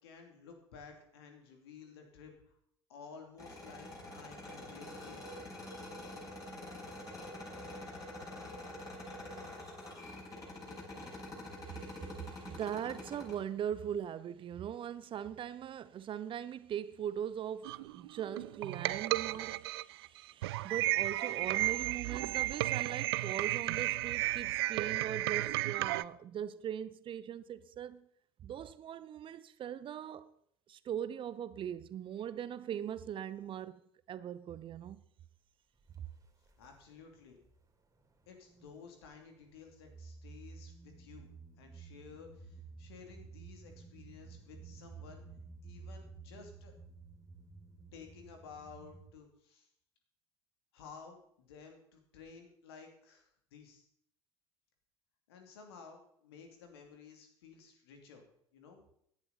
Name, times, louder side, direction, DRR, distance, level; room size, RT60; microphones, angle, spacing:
voice 1, 0.0-2.6 2.9-5.3 36.6-37.4 38.3-41.3 41.6-45.2 45.6-46.7 47.9-49.7 50.7-53.9 55.3-58.2 58.5-58.8, left 5 dB, 70° left, 2.8 m, -54 dB
sound 1, 3.4-13.3, left 1 dB, 25° left, 5.9 m, -46 dB
voice 2, 11.7-28.1 28.4-30.3 30.7-33.8 34.1-35.0, right 9 dB, 40° right, 0.8 m, -40 dB
sound 2, 17.6-26.0, right 17 dB, 70° right, 0.4 m, -33 dB
sound 3, 35.8-36.0 36.5-37.6 38.0-38.9 39.4-49.1, right 4 dB, 25° right, 3.2 m, -53 dB
16.5 x 11.0 x 4.1 m
figure-of-eight pair, 65°, 14 cm